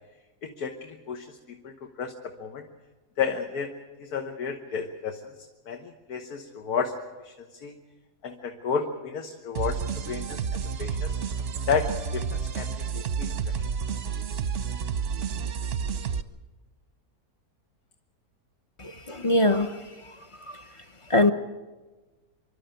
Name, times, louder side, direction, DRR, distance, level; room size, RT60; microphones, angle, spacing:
voice 1, 0.4-2.1 2.4-2.6 3.2-3.7 4.0-5.3 5.7-6.9 7.2-7.7 8.2-9.8 10.1-11.2 11.7-12.7 12.9-13.6, left 6 dB, 70° left, 4 dB, 1.7 m, -32 dB
sound 1, 9.5-16.2, right 6 dB, 50° right, 0.9 m, -30 dB
voice 2, 18.8-20.1 20.4-20.6 21.1-21.3, left 2 dB, 25° left, 8 dB, 0.8 m, -24 dB
26.5 x 12.0 x 8.9 m, 1.2 s
omnidirectional pair, 1.7 m